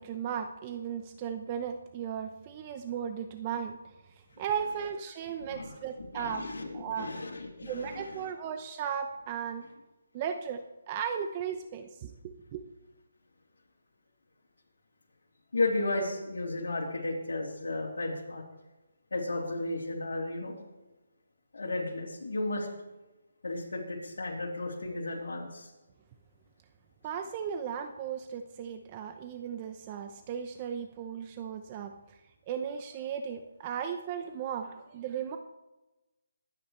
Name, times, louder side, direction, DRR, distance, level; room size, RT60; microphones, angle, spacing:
voice 1, 0.0-3.8 4.4-6.5 6.7-7.1 7.6-9.6 10.1-12.6 27.0-32.2 32.5-35.4, right 8 dB, 30° right, 7 dB, 0.7 m, -36 dB
voice 2, 5.5-8.2 15.5-18.4 19.1-20.6 21.5-22.7 23.4-25.7, left 2 dB, 80° left, -3 dB, 3.2 m, -34 dB
23.0 x 9.2 x 3.3 m, 1.1 s
hypercardioid pair, 160°, 0 cm